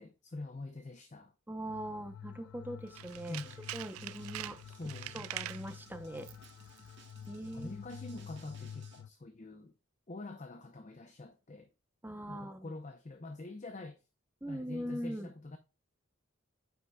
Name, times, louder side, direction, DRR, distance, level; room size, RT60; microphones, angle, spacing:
voice 1, 0.0-1.3 3.3-3.7 4.7-5.3 7.5-9.8 10.1-11.7 12.3-14.0 14.5-15.6, left 2 dB, 35° left, 0.6 m, -45 dB
voice 2, 1.5-3.4 3.7-4.6 5.1-6.3 7.3-7.7 12.0-12.7 14.4-15.3, equal, 10° right, 0.7 m, -41 dB
sound 1, 1.7-9.1, left 8 dB, 85° left, 0.3 m, -49 dB
Tools, 2.9-5.7 6.2-6.5 6.8-6.9, right 15 dB, 85° right, 0.3 m, -44 dB
sound 2, 3.1-9.0, right 4 dB, 55° right, 1.8 m, -60 dB
9.6 x 5.6 x 2.3 m
head